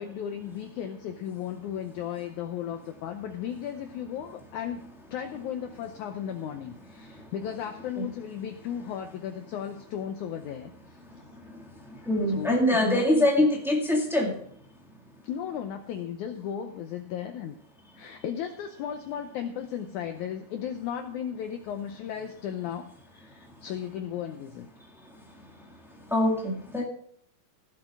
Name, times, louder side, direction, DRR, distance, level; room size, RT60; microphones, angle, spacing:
voice 1, 0.0-11.0 12.3-13.5 15.2-17.6 18.0-24.7, left 9 dB, 80° left, 6 dB, 1.7 m, -35 dB
voice 2, 12.1-14.3 26.1-26.8, left 1 dB, ahead, -1 dB, 0.6 m, -23 dB
16.5 x 7.6 x 3.6 m, 0.63 s
omnidirectional pair, 4.3 m